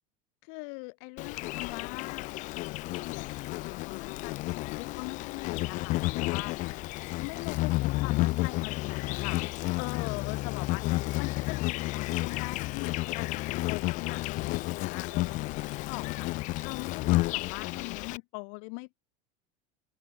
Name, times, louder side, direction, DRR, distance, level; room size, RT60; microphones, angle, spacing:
voice 1, 0.4-2.3 3.0-6.9 7.2-9.4 9.8-13.4 13.7-19.0, left 40 dB or more, 65° left, 7.7 m, -42 dB
Insect, 1.2-18.2, left 21 dB, 45° left, 1.1 m, -31 dB
open air
supercardioid pair, 155°, 17 cm